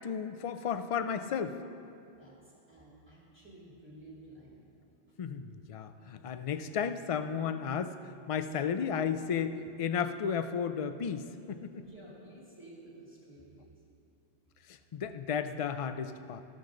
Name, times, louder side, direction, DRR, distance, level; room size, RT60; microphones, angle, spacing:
voice 1, 0.0-1.6 5.2-11.8 14.7-16.4, left 7 dB, 65° left, 10 dB, 0.3 m, -34 dB
voice 2, 2.2-4.7 5.1-5.2 11.8-13.7, right 1 dB, 10° right, -6 dB, 2.8 m, -53 dB
13.5 x 13.0 x 3.8 m, 2.6 s
omnidirectional pair, 1.1 m